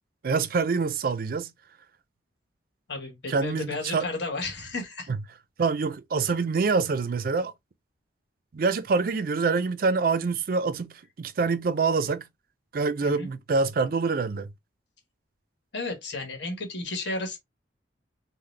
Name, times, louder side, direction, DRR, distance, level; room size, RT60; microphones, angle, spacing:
voice 1, 0.2-1.5 3.3-4.1 5.6-7.5 8.5-12.3 12.7-14.5, right 4 dB, 50° right, 0.4 m, -26 dB
voice 2, 2.9-5.1 13.0-13.3 15.7-17.4, left 3 dB, 70° left, 1.3 m, -33 dB
3.8 x 2.1 x 3.1 m
head